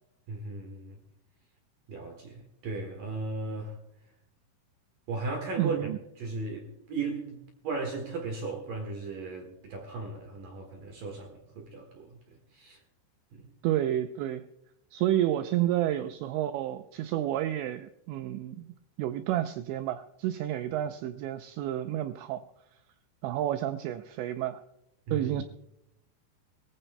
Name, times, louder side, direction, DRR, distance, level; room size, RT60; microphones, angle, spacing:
voice 1, 0.3-1.0 1.9-3.8 5.1-5.9 6.2-7.4 7.6-12.8 13.3-13.5 25.1-25.4, right 3 dB, 60° right, 3 dB, 2.4 m, -36 dB
voice 2, 5.6-6.0 13.6-14.5 14.9-18.7 19.0-22.4 23.2-24.6 25.1-25.4, right 12 dB, 90° right, 9 dB, 2.5 m, -30 dB
22.0 x 15.5 x 2.2 m, 0.83 s
omnidirectional pair, 5.8 m